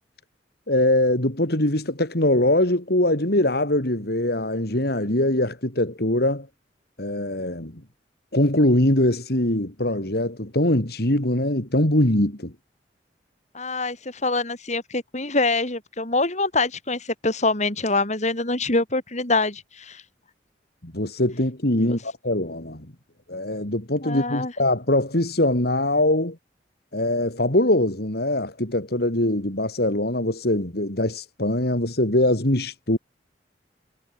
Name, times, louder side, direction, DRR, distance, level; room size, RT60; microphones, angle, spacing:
voice 1, 0.7-6.5 7.0-7.8 8.3-12.5 20.8-22.9 23.3-26.4 26.9-33.0, left 1 dB, 60° left, 3.7 m, -22 dB
voice 2, 13.5-20.0 21.8-22.0 24.0-24.5, left 3 dB, 40° left, 5.0 m, -25 dB
head